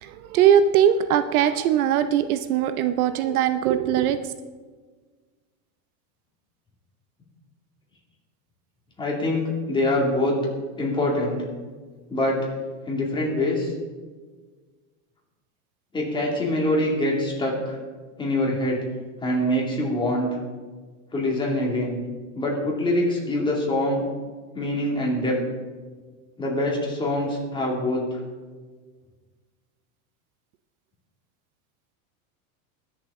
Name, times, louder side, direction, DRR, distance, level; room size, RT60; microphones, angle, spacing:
voice 1, 0.0-4.2, right 9 dB, 85° right, 10 dB, 0.8 m, -20 dB
voice 2, 9.0-10.3 10.8-11.4 12.1-12.5 12.9-13.7 15.9-17.8 18.2-18.8 19.2-20.3 21.1-22.0 22.3-24.0 24.5-25.4 26.4-28.0, left 1 dB, 10° left, -2 dB, 2.5 m, -24 dB
21.0 x 7.1 x 3.7 m, 1.4 s
supercardioid pair, 155°, 42 cm